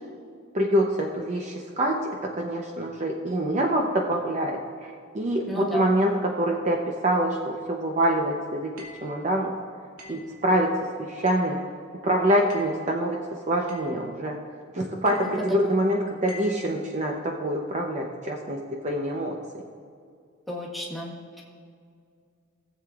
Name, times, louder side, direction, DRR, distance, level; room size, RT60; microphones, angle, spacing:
voice 1, 0.5-2.0 2.4-8.7 9.0-9.5 10.1-10.7 11.0-11.6 12.0-13.2 13.5-14.4 14.7-18.6 18.8-19.3, right 1 dB, 35° right, 0 dB, 0.7 m, -25 dB
voice 2, 5.5-5.9 20.5-21.4, left 1 dB, ahead, -3 dB, 1.4 m, -33 dB
sound 1, 8.8-9.1 10.0-10.3 11.3-11.6 12.5-12.8 13.7-14.0 15.1-15.4 16.3-16.6, left 2 dB, 90° right, 2.5 m, -44 dB
17.0 x 7.7 x 2.4 m, 2.2 s
head